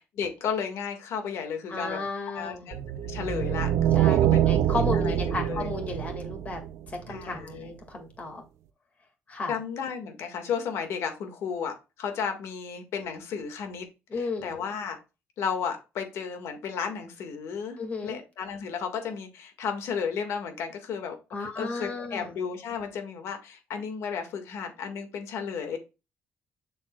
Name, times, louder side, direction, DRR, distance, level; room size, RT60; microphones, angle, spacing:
voice 1, 0.2-2.0 2.3-2.8 3.1-4.4 4.9-5.7 7.1-7.7 9.5-13.9 14.1-15.0 15.4-25.8, left 6 dB, 80° left, 6 dB, 1.8 m, -33 dB
voice 2, 1.7-2.7 3.9-6.6 6.9-8.4 9.3-9.5 14.1-14.6 17.8-18.2 21.3-22.4, left 3 dB, 30° left, 4 dB, 2.0 m, -34 dB
sound 1, 2.7-7.1, right 11 dB, 80° right, 0.5 m, -25 dB
7.3 x 6.6 x 2.3 m, 0.28 s
cardioid pair, 155°, 5 cm